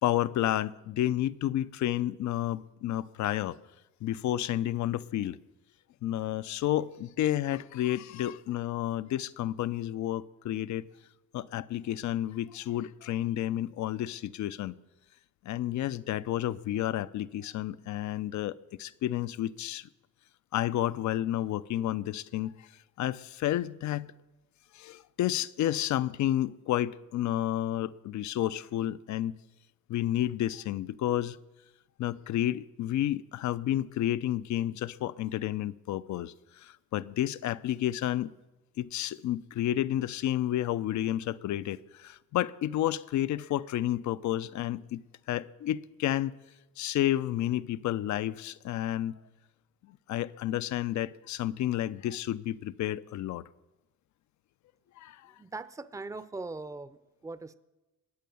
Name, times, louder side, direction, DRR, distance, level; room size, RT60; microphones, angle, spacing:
voice 1, 0.0-3.6 4.0-5.4 6.0-10.9 11.3-14.7 15.4-19.9 20.5-22.5 23.0-24.1 24.7-29.3 29.9-31.4 32.0-38.3 38.8-45.0 45.3-46.3 46.8-49.1 49.9-53.4 55.0-55.3, left 13 dB, 70° left, 0.6 m, -31 dB
voice 2, 55.4-57.0 57.2-57.5, right 3 dB, 10° right, 0.6 m, -40 dB
21.0 x 8.5 x 7.0 m
cardioid pair, 90°, 30 cm